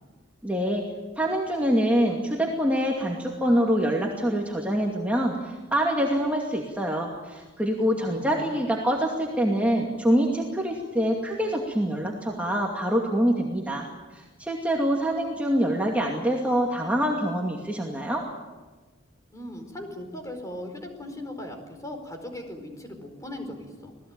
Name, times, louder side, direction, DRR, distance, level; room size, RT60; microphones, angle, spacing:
voice 1, 0.4-0.8 1.2-13.9 14.1-18.2, equal, 10° right, -1 dB, 2.4 m, -25 dB
voice 2, 7.9-8.7 19.3-23.9, left 1 dB, 15° left, 5 dB, 4.7 m, -39 dB
27.5 x 18.5 x 9.0 m, 1.3 s
head